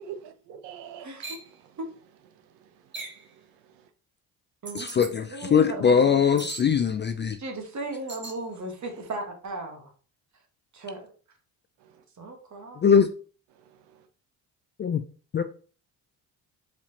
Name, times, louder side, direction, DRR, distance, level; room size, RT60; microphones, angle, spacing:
voice 1, 0.0-1.1 2.6-2.7 3.2-3.4 11.8-12.0 13.7-14.1, right 8 dB, 80° right, 0.7 m, -44 dB
voice 2, 1.0-1.4 4.6-6.4 7.4-9.9 10.7-11.1 12.2-12.8, right 2 dB, 40° right, 1.5 m, -37 dB
sound 1, 1.2-1.5 2.9-3.3 4.7-5.1 6.4-6.7 8.1-8.4, right 4 dB, 25° right, 1.3 m, -39 dB
voice 3, 4.7-7.4 12.8-13.1 14.8-15.0 15.3-15.4, left 7 dB, 30° left, 0.3 m, -21 dB
4.7 x 3.4 x 2.8 m
cardioid pair, 80°, 42 cm